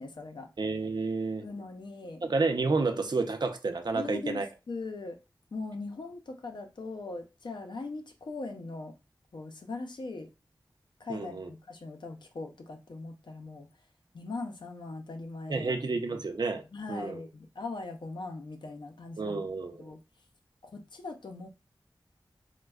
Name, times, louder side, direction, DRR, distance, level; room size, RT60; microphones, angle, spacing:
voice 1, 0.0-0.5 1.4-2.2 3.9-5.2 5.5-9.0 9.3-10.3 11.0-13.7 14.1-15.7 16.7-19.5 19.8-20.0 20.6-21.5, left 3 dB, 75° left, 0.6 m, -40 dB
voice 2, 0.6-1.4 2.3-4.5 11.1-11.5 15.5-16.6 16.9-17.2 19.2-19.9, right 3 dB, 65° right, 0.5 m, -30 dB
4.1 x 2.2 x 2.3 m
wide cardioid pair, 70°, 8 cm